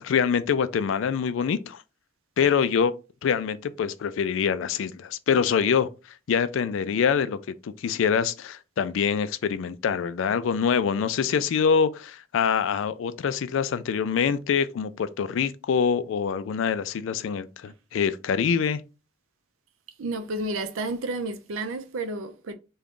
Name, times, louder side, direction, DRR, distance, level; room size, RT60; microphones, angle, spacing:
voice 1, 0.0-1.8 2.4-2.9 3.2-5.9 6.3-7.4 7.6-18.8, left 6 dB, 70° left, 0.3 m, -25 dB
voice 2, 20.0-22.5, right 2 dB, 85° right, 0.5 m, -31 dB
3.7 x 2.3 x 3.6 m
head